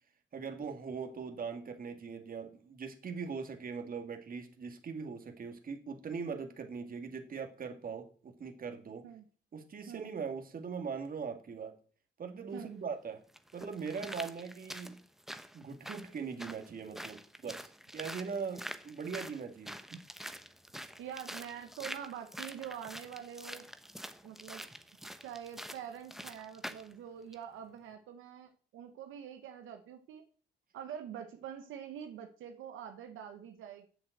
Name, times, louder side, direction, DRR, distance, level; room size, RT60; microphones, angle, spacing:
voice 1, 0.3-9.1 9.5-11.8 12.2-13.2 13.5-15.0 15.5-20.0, right 5 dB, 45° right, 5 dB, 2.0 m, -41 dB
sound 1, 12.5-12.6 13.3-26.9 27.3-27.4, equal, ahead, 1.0 m, -46 dB
voice 2, 21.0-23.7 24.2-24.6 25.2-30.2 30.7-33.9, right 9 dB, 85° right, 6 dB, 1.1 m, -45 dB
7.7 x 7.2 x 7.9 m, 0.43 s
cardioid pair, 90°, 20 cm